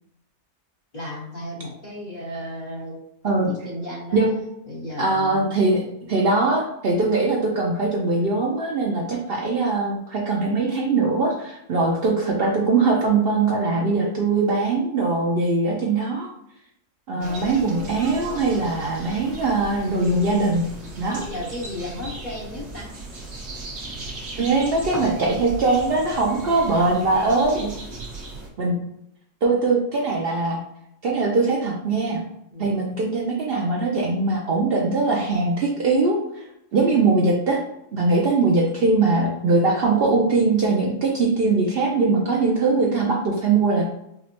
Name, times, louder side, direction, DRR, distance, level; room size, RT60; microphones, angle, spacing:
voice 1, 0.9-3.0 3.2-4.2 4.7-5.7 17.1-17.4 21.1-22.9 32.5-32.8, left 1 dB, 35° left, -7 dB, 1.0 m, -34 dB
voice 2, 5.0-5.8 6.1-16.3 17.1-20.7 21.0-21.2 24.4-27.7 28.6-28.8 29.4-30.6 31.0-32.2 32.6-37.6 37.9-43.9, right 3 dB, 75° right, -2 dB, 0.5 m, -21 dB
sound 1, 17.2-28.5, right 2 dB, 55° right, 1.3 m, -37 dB
5.0 x 2.1 x 2.9 m, 0.77 s
omnidirectional pair, 1.6 m